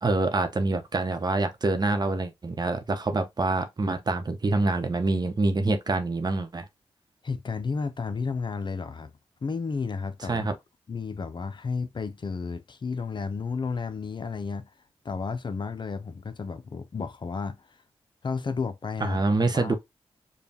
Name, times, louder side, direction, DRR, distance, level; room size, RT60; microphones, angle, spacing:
voice 1, 0.0-6.7 10.3-10.5 19.0-19.7, right 2 dB, 40° right, 0.9 m, -26 dB
voice 2, 7.2-9.1 9.4-10.5 10.9-14.7 15.0-17.8 18.2-19.2 19.5-19.7, left 5 dB, 50° left, 0.5 m, -32 dB
5.2 x 2.3 x 2.8 m
cardioid pair, 45°, 10 cm